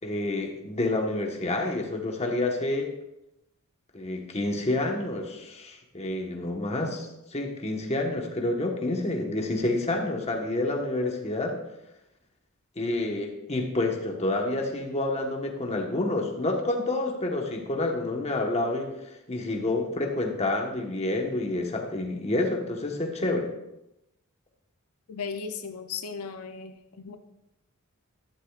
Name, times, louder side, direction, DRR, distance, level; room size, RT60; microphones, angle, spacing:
voice 1, 0.0-2.9 3.9-11.5 12.8-18.9 19.3-23.5, left 2 dB, 30° left, 2 dB, 1.3 m, -28 dB
voice 2, 25.1-27.2, left 5 dB, 80° left, 7 dB, 0.6 m, -36 dB
12.0 x 11.0 x 2.4 m, 0.89 s
head